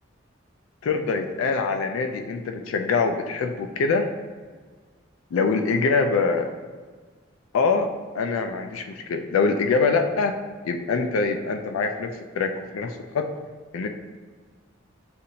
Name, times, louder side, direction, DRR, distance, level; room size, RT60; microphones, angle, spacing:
voice 1, 0.8-4.1 5.3-6.5 7.5-7.9 8.1-10.3 10.6-13.3 13.7-13.9, left 4 dB, 80° left, 5 dB, 0.4 m, -24 dB
6.7 x 2.5 x 2.8 m, 1.5 s
head